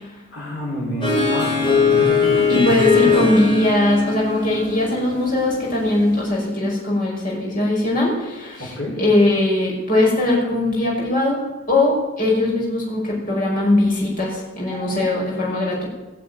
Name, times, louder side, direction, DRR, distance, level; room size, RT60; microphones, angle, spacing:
voice 1, 0.3-3.1 8.6-8.9, equal, 60° left, -6 dB, 5.1 m, -27 dB
Harp, 1.0-6.2, left 5 dB, 25° left, 5.4 m, -21 dB
voice 2, 2.5-11.4 11.7-15.9, left 2 dB, 40° left, -3 dB, 5.9 m, -20 dB
18.0 x 7.6 x 9.3 m, 1.2 s
head